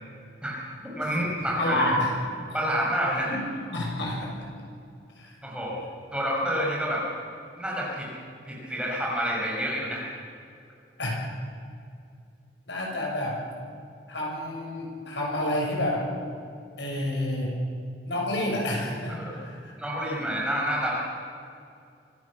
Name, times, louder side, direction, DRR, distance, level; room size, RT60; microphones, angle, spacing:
voice 1, 0.9-1.8 2.5-3.3 5.4-5.8 6.1-7.0 7.6-8.1 8.4-10.1 19.1-19.4 19.8-20.9, equal, 5° right, -4 dB, 5.6 m, -28 dB
voice 2, 1.6-2.1 3.1-3.4 3.7-4.5 5.2-5.3 11.0-11.2 12.7-13.4 14.1-16.1 16.8-17.5 18.1-19.7, left 1 dB, 80° left, -1 dB, 6.6 m, -29 dB
25.0 x 16.0 x 7.3 m, 2.5 s
head